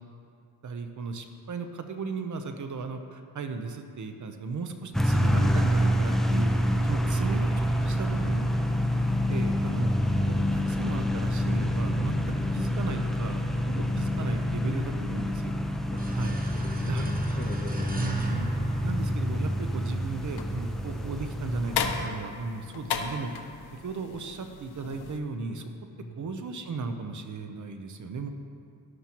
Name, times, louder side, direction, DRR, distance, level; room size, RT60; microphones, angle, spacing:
voice 1, 0.6-6.5 6.8-8.5 9.3-9.9 10.2-12.2 12.5-15.5 16.1-16.4 16.9-17.1 17.9-18.5 18.8-23.3 23.7-25.7 26.2-28.3, right 4 dB, 45° right, 6 dB, 0.8 m, -35 dB
sound 1, 4.9-22.1, equal, ahead, 0.6 m, -27 dB
voice 2, 6.9-7.4 15.9-16.1 16.5-18.0 26.0-26.2, left 3 dB, 25° left, -5 dB, 1.4 m, -40 dB
sound 2, 16.0-19.6, right 2 dB, 20° right, 1.1 m, -43 dB
sound 3, 18.2-25.2, left 6 dB, 75° left, 0.9 m, -37 dB
13.0 x 11.0 x 3.0 m, 2.4 s
cardioid pair, 100°, 40 cm